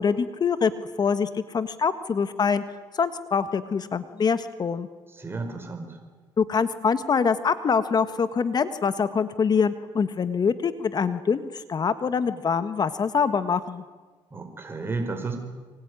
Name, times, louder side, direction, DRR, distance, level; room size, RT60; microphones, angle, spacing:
voice 1, 0.0-2.6 2.9-4.9 6.4-13.8, left 6 dB, 40° left, 12 dB, 1.5 m, -24 dB
voice 2, 5.2-5.9 14.3-15.4, right 3 dB, 20° right, 4 dB, 5.0 m, -32 dB
25.0 x 23.5 x 9.9 m, 1.3 s
cardioid pair, 95°, 10 cm